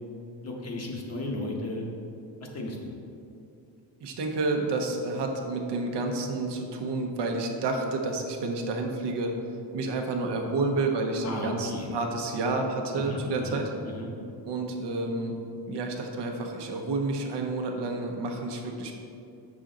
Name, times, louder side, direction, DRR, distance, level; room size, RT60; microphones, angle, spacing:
voice 1, 0.4-1.8 2.4-2.9 11.2-11.9 12.9-14.1, left 1 dB, 35° left, 0 dB, 1.0 m, -35 dB
voice 2, 4.0-9.3 9.7-13.7 14.5-15.4 15.7-18.9, right 3 dB, 65° right, 2 dB, 0.9 m, -30 dB
7.3 x 6.1 x 3.8 m, 2.6 s
cardioid pair, 170°, 44 cm